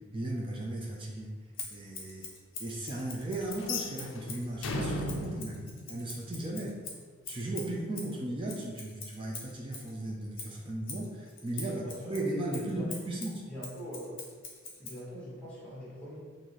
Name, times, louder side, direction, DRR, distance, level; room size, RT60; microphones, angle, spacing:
voice 1, 0.1-1.3 1.7-2.3 2.6-5.6 5.9-6.8 7.3-13.4, right 1 dB, 25° right, -2 dB, 0.4 m, -36 dB
Scissors, 1.5-4.5 5.0-9.9 10.3-15.0, left 4 dB, 45° left, 0.8 m, -44 dB
sound 1, 3.6-6.7, left 2 dB, 65° left, 0.4 m, -37 dB
voice 2, 11.7-12.2 12.5-12.9 13.5-14.2 14.8-16.2, equal, 5° left, -8 dB, 1.1 m, -43 dB
3.9 x 2.6 x 3.0 m, 1.5 s
head